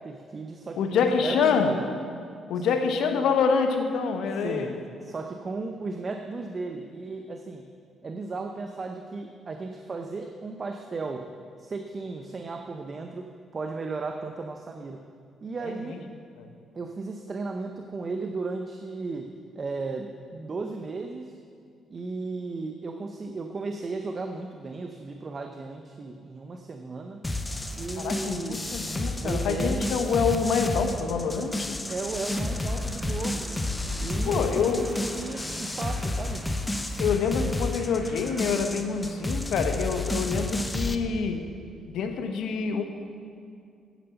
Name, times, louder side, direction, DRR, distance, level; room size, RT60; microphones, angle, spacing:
voice 1, 0.0-1.9 2.5-2.7 4.4-7.7 8.0-11.3 11.6-15.0 15.4-16.1 16.7-21.4 21.9-27.2 27.7-28.7 29.2-29.9 31.9-33.5 34.0-36.5, right 3 dB, 35° right, 5 dB, 0.7 m, -35 dB
voice 2, 0.8-1.8 2.5-4.8 15.6-16.0 16.4-16.5 28.0-31.8 34.2-34.9 37.0-41.5 41.9-42.8, left 5 dB, 80° left, 6 dB, 1.0 m, -26 dB
sound 1, 27.2-41.0, left 1 dB, 15° left, 0.7 m, -31 dB
sound 2, 27.4-40.6, equal, 15° right, 3.3 m, -46 dB
9.0 x 8.4 x 6.9 m, 2.3 s
cardioid pair, 90°, 0 cm